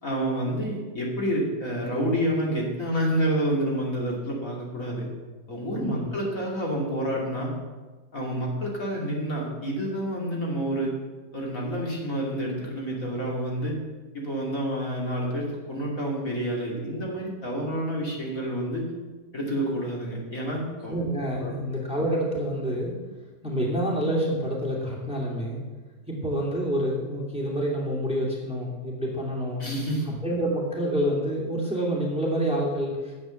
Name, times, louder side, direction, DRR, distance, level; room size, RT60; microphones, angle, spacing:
voice 1, 0.0-5.1 5.5-7.5 8.1-11.0 11.3-13.7 14.1-18.9 19.3-20.9 21.3-21.5 29.6-30.1, right 1 dB, 55° left, -3 dB, 3.1 m, -28 dB
voice 2, 20.9-22.9 23.4-25.6 26.1-29.7 30.1-33.1, equal, 5° right, -3 dB, 2.4 m, -27 dB
10.5 x 7.9 x 7.6 m, 1.3 s
omnidirectional pair, 1.8 m